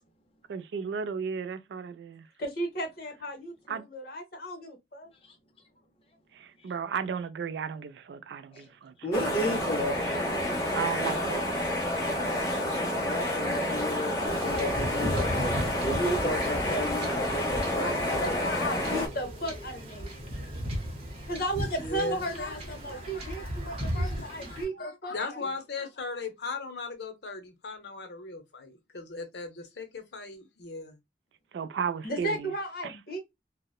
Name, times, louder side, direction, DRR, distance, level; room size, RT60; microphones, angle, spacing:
voice 1, 0.5-2.2 3.7-3.9 6.4-8.9 9.3-9.4 10.7-11.5 31.5-32.5 32.8-32.9, right 6 dB, 75° right, 0.3 m, -34 dB
voice 2, 2.4-5.1 17.7-20.1 21.3-25.3 32.0-33.2, right 1 dB, 55° left, 1.0 m, -35 dB
voice 3, 9.0-10.4 13.0-18.5, equal, 30° left, 0.5 m, -33 dB
sound 1, 9.1-19.1, left 1 dB, 15° left, 1.0 m, -29 dB
Wind / Ocean / Boat Water vehicle, 14.3-24.6, equal, 35° right, 0.8 m, -36 dB
voice 4, 21.8-31.0, left 3 dB, 70° left, 0.7 m, -39 dB
2.8 x 2.0 x 2.3 m
head